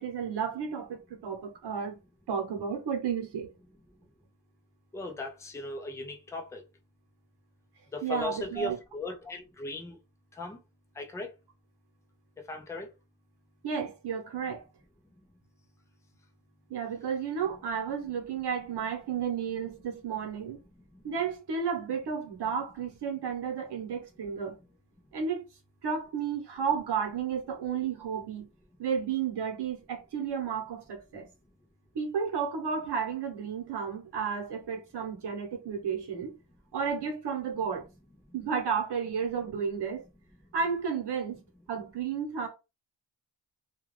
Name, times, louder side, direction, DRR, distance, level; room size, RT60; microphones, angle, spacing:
voice 1, 0.0-2.0 2.3-3.5 8.0-8.8 13.6-14.6 16.7-20.6 21.0-24.6 25.1-25.4 25.8-28.4 28.8-31.3 31.9-36.3 36.7-37.8 38.3-40.0 40.5-41.4 41.7-42.5, right 6 dB, 65° right, 1.0 m, -32 dB
voice 2, 4.9-6.6 7.9-10.0 10.3-10.6 10.9-11.4 12.4-12.9 20.9-21.0, left 2 dB, 10° left, 0.3 m, -38 dB
2.4 x 2.3 x 3.1 m
wide cardioid pair, 175°, 43 cm